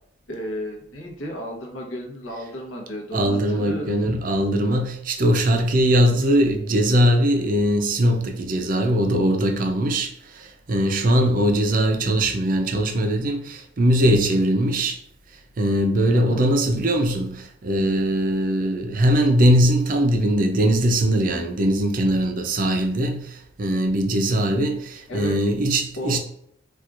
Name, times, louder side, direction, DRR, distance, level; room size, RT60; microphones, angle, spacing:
voice 1, 0.3-4.0 16.1-16.5 25.1-25.5 26.0-26.2, equal, 80° left, 0.9 m, -33 dB
voice 2, 3.1-15.0 15.6-26.2, equal, 45° right, 0.4 m, -21 dB
4.3 x 2.4 x 2.4 m
head